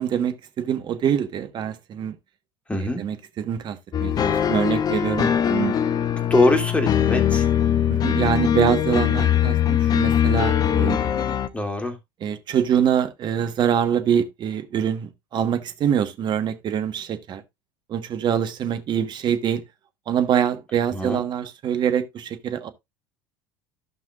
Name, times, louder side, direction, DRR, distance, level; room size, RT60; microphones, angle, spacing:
voice 1, 0.0-2.1 2.8-5.8 7.9-11.0 12.2-17.4 17.9-19.6 20.1-22.7, right 9 dB, 40° right, 1.3 m, -24 dB
voice 2, 2.7-3.0 6.3-7.4 11.5-11.9 20.9-21.2, left 2 dB, 10° left, 2.7 m, -22 dB
sound 1, 3.9-11.5, left 9 dB, 35° left, 0.9 m, -21 dB
15.0 x 5.7 x 2.5 m
hypercardioid pair, 75°, 12 cm